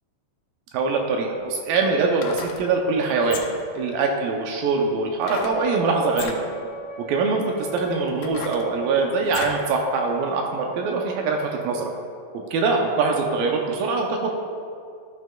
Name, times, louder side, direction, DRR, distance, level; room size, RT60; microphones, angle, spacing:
voice 1, 0.7-3.4 3.8-6.4 7.1-11.9 12.3-14.3, right 4 dB, 80° right, 1 dB, 2.4 m, -23 dB
sound 1, 2.0-2.6 3.2-3.7 5.2-5.6 6.1-6.4 7.1-7.2 7.8-9.6 10.1-10.2, left 6 dB, 80° left, 1.7 m, -35 dB
Wind instrument woodwind instrument, 5.2-11.7, right 4 dB, 55° right, 2.1 m, -39 dB
13.5 x 6.5 x 2.2 m, 2.3 s
omnidirectional pair, 4.1 m